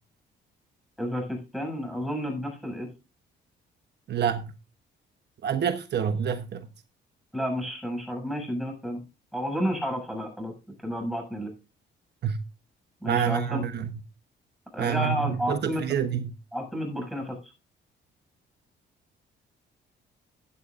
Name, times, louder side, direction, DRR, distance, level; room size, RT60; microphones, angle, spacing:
voice 1, 1.0-2.9 7.3-9.0 9.3-10.5 10.8-11.5 13.0-13.6 14.7-15.8 16.5-17.5, equal, ahead, 7.2 m, -31 dB
voice 2, 4.1-4.5 5.4-6.7 12.2-12.4 13.1-13.9 14.8-16.3, right 8 dB, 55° right, 1.1 m, -27 dB
15.5 x 9.4 x 2.5 m
cardioid pair, 90°, 20 cm